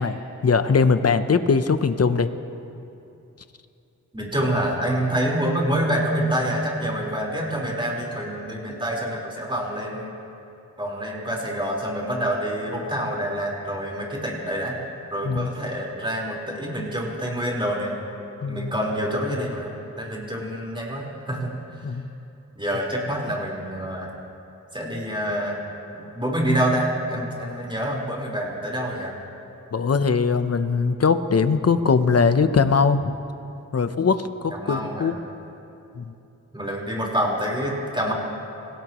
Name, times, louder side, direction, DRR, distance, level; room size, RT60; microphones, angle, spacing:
voice 1, 0.0-2.3 15.2-15.5 18.4-18.7 21.8-22.0 29.7-33.2 33.7-35.2 36.0-36.1, left 5 dB, 50° left, 10 dB, 0.8 m, -21 dB
voice 2, 4.1-10.1 10.8-14.8 15.1-18.0 18.5-22.0 22.5-24.1 24.7-25.6 25.9-29.1 34.5-35.1 36.5-38.1, right 1 dB, 15° right, -3 dB, 4.4 m, -27 dB
26.0 x 17.5 x 3.1 m, 2.8 s
wide cardioid pair, 70°, 33 cm